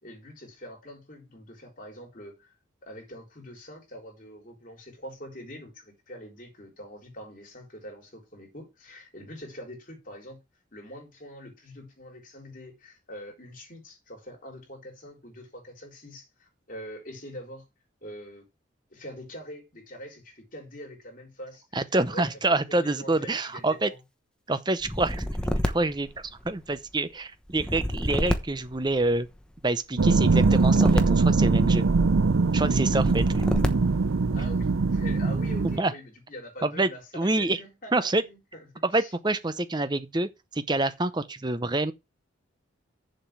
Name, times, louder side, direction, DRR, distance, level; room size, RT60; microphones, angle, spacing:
voice 1, 0.0-2.5 2.8-10.4 10.7-17.6 18.0-18.5 18.9-21.8 22.1-24.0 34.3-38.4 38.7-39.1, equal, 40° left, 3.9 m, -44 dB
voice 2, 21.7-23.9 24.5-25.3 25.6-26.1 26.4-29.3 29.6-31.9 32.5-33.4 35.8-35.9 36.6-37.6 37.9-38.2 38.8-41.9, right 2 dB, 20° right, 0.7 m, -27 dB
sound 1, 24.8-26.8 27.5-29.4 30.1-32.1 32.8-34.1, equal, 5° left, 1.0 m, -30 dB
sound 2, 30.0-35.8, right 4 dB, 80° right, 0.6 m, -22 dB
7.2 x 5.3 x 7.3 m
head